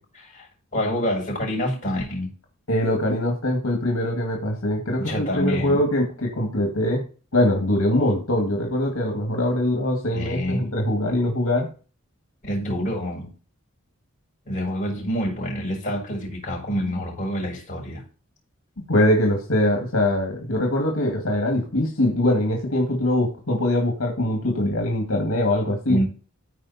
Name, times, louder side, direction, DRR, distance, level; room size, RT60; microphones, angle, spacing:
voice 1, 0.2-2.3 5.0-5.8 10.1-10.7 12.4-13.3 14.4-18.0 25.9-26.0, equal, 35° left, 6.0 m, -27 dB
voice 2, 2.7-7.0 7.3-11.7 18.9-26.0, left 1 dB, 75° left, 2.2 m, -22 dB
14.0 x 5.1 x 4.2 m
head